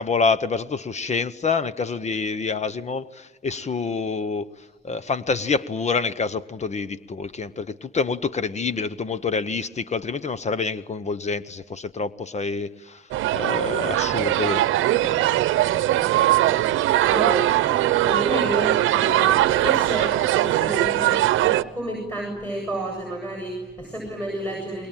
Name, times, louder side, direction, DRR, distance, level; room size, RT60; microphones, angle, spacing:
voice 1, 0.0-4.5 4.8-13.0 13.3-14.6 15.0-15.2, left 4 dB, 35° left, 14 dB, 0.9 m, -27 dB
sound 1, 13.1-21.6, right 14 dB, 85° right, 0.8 m, -21 dB
voice 2, 15.1-19.3 19.6-24.9, right 1 dB, 5° left, 2 dB, 7.9 m, -31 dB
28.0 x 22.0 x 9.1 m, 1.3 s
cardioid pair, 90°, 20 cm